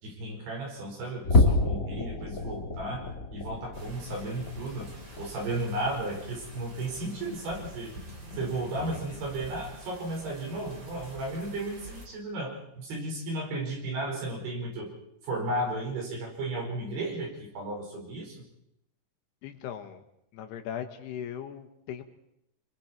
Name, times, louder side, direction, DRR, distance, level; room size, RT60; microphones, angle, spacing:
voice 1, 0.0-3.0 3.3-4.9 5.2-8.0 8.3-14.9 15.2-18.4, right 2 dB, 75° right, 0 dB, 6.9 m, -34 dB
sound 1, 1.2-7.9 8.3-8.6 9.0-9.1 9.7-9.8, left 2 dB, 50° left, 0.9 m, -30 dB
sound 2, 3.7-12.1, right 1 dB, 30° right, 3.8 m, -46 dB
voice 2, 19.4-20.0 20.3-22.0, left 9 dB, 85° left, 7 dB, 3.5 m, -39 dB
27.5 x 21.5 x 4.5 m, 0.79 s
omnidirectional pair, 4.6 m